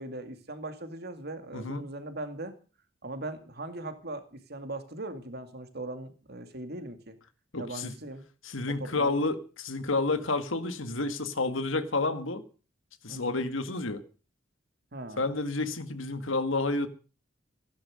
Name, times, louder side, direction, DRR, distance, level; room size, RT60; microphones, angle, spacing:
voice 1, 0.0-2.5 3.0-7.2 7.6-8.2 8.7-9.2 13.1-13.4 14.9-15.3, right 2 dB, 55° right, 9 dB, 2.3 m, -39 dB
voice 2, 1.5-1.8 7.5-7.9 8.4-12.4 13.0-14.0 15.2-16.9, left 3 dB, 80° left, 10 dB, 1.8 m, -30 dB
15.5 x 11.5 x 6.4 m, 0.36 s
head